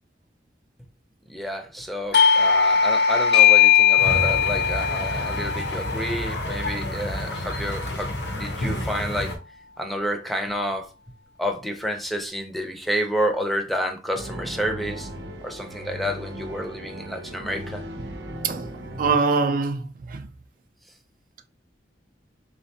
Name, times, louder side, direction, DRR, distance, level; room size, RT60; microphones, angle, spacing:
voice 1, 1.3-9.3 9.8-10.9 11.4-15.1 15.4-17.8, equal, ahead, 0.5 m, -29 dB
Doorbell, 2.1-7.4, left 7 dB, 65° left, 0.6 m, -20 dB
sound 1, 4.0-9.4, left 1 dB, 90° left, 1.0 m, -30 dB
sound 2, 14.1-19.1, equal, 70° right, 0.7 m, -37 dB
voice 2, 19.0-20.3, right 4 dB, 50° right, 0.4 m, -23 dB
3.7 x 3.2 x 2.8 m
head